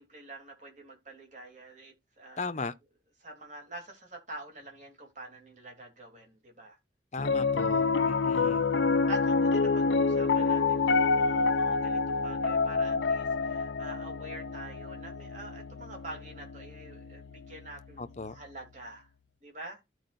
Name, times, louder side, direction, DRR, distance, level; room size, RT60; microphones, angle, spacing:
voice 1, 0.0-2.4 3.2-6.8 9.1-19.1 19.4-19.8, right 2 dB, 45° right, 2.9 m, -46 dB
voice 2, 2.4-2.7 7.1-8.6 18.0-18.4, left 3 dB, 40° left, 0.7 m, -36 dB
Piano, 7.2-17.5, left 4 dB, 80° left, 0.5 m, -27 dB
14.5 x 4.8 x 2.5 m
head